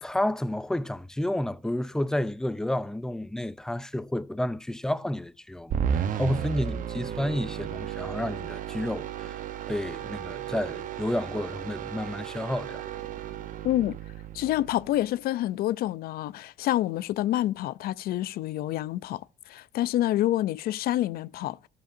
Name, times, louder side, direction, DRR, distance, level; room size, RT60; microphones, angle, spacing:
voice 1, 0.0-9.4 9.7-12.8, left 1 dB, 5° left, 0.4 m, -31 dB
sound 1, 5.7-15.1, right 9 dB, 50° right, 0.8 m, -34 dB
voice 2, 13.6-14.0 14.3-19.2 19.5-21.6, left 14 dB, 65° left, 0.4 m, -27 dB
13.0 x 7.8 x 2.5 m
cardioid pair, 110°, 17 cm